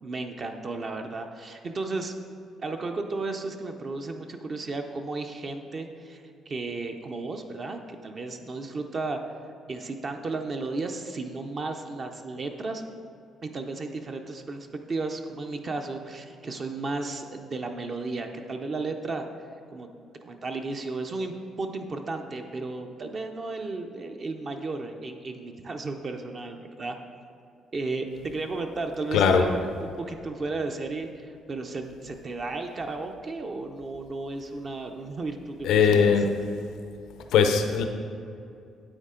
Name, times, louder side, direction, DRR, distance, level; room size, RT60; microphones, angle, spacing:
voice 1, 0.0-2.1 2.6-9.3 9.7-12.8 13.4-19.3 19.7-19.9 20.2-27.0 27.7-36.1, right 3 dB, 30° right, 4 dB, 0.5 m, -34 dB
voice 2, 29.1-29.4 35.6-36.3 37.3-37.8, left 6 dB, 85° left, 5 dB, 0.6 m, -20 dB
9.6 x 8.0 x 3.7 m, 2.5 s
cardioid pair, 160°, 0 cm